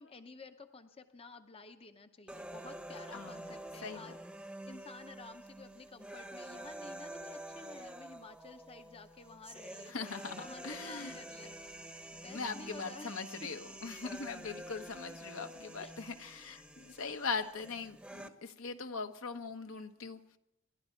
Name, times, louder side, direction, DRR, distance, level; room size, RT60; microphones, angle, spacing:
voice 1, 0.0-4.3 4.6-9.9 10.4-11.7 12.1-13.2 15.8-16.0, left 3 dB, 25° left, 7 dB, 0.7 m, -52 dB
sound 1, 2.3-18.3, right 1 dB, 5° right, 0.9 m, -48 dB
voice 2, 3.1-3.5 3.8-4.1 9.9-11.2 12.3-20.2, left 4 dB, 65° left, 7 dB, 1.1 m, -41 dB
27.5 x 12.0 x 4.4 m, 0.78 s
head